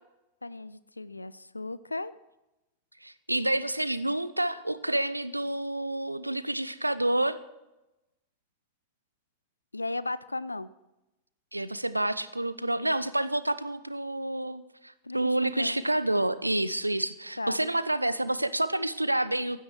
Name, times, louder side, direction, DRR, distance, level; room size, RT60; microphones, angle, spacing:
voice 1, 0.4-2.1 9.7-10.7 15.0-15.8 17.4-17.6, left 2 dB, 85° left, 17 dB, 0.4 m, -35 dB
voice 2, 3.0-7.4 11.5-19.6, right 1 dB, 85° right, 15 dB, 0.6 m, -29 dB
15.5 x 12.0 x 4.7 m, 0.98 s
figure-of-eight pair, 90°, 0 cm